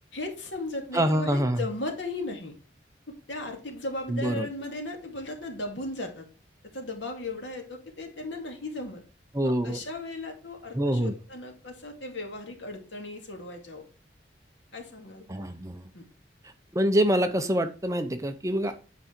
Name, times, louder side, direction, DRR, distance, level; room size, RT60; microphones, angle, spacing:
voice 1, 0.1-2.5 3.1-6.3 6.7-9.0 9.4-13.9 14.7-15.3 15.9-16.0 18.6-18.7, left 2 dB, 80° left, 3 dB, 2.1 m, -36 dB
voice 2, 0.9-1.6 4.1-4.5 9.3-9.8 10.7-11.2 15.3-15.9 16.7-18.7, right 1 dB, 15° right, 8 dB, 0.6 m, -25 dB
8.3 x 4.9 x 4.4 m, 0.34 s
head